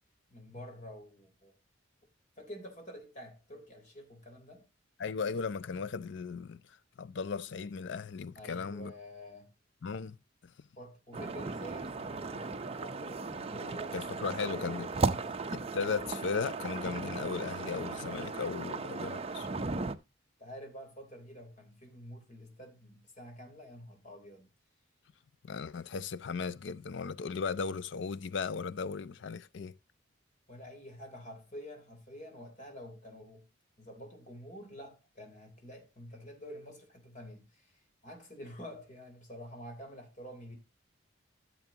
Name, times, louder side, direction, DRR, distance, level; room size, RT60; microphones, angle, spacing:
voice 1, 0.3-1.6 2.4-4.7 8.4-9.5 10.8-12.5 12.8-15.4 20.4-24.5 30.5-33.5 33.8-40.6, equal, 40° left, 3.5 m, -48 dB
voice 2, 5.0-6.6 7.0-8.9 9.8-10.2 13.9-14.9 15.5-19.5 25.4-29.8, left 5 dB, 65° left, 0.5 m, -36 dB
sound 1, 11.1-19.9, right 3 dB, 30° right, 0.7 m, -36 dB
14.0 x 7.1 x 2.8 m
head